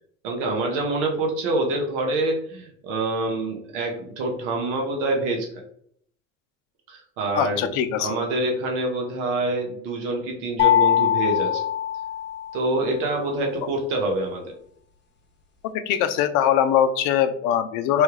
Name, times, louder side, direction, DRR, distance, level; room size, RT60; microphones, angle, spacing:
voice 1, 0.2-5.6 6.9-7.7 8.0-11.6 12.5-14.5, right 2 dB, 75° right, 1 dB, 1.0 m, -26 dB
voice 2, 7.3-8.1 15.6-18.0, left 9 dB, 60° left, 10 dB, 0.5 m, -22 dB
sound 1, 10.6-12.7, left 10 dB, 30° left, 0.9 m, -22 dB
3.1 x 2.3 x 3.1 m, 0.64 s
hypercardioid pair, 75°, 36 cm